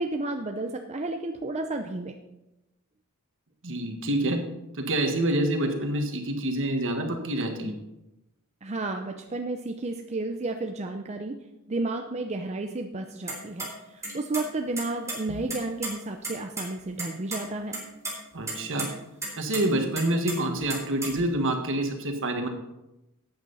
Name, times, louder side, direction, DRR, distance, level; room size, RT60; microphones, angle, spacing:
voice 1, 0.0-2.2 8.6-11.4 11.7-17.8, right 2 dB, 30° right, 4 dB, 0.6 m, -32 dB
voice 2, 3.6-4.4 4.7-7.8 18.3-18.9 19.4-22.5, right 1 dB, 60° right, 5 dB, 1.6 m, -27 dB
sound 1, 13.3-13.7 14.0-14.4 14.8-15.9 16.2-16.3 16.6-16.7 17.0-17.4 17.7-18.1 18.5-18.9 19.2-19.6 20.0-21.3, right 2 dB, 15° right, 3.6 m, -33 dB
13.5 x 8.9 x 4.1 m, 0.95 s
head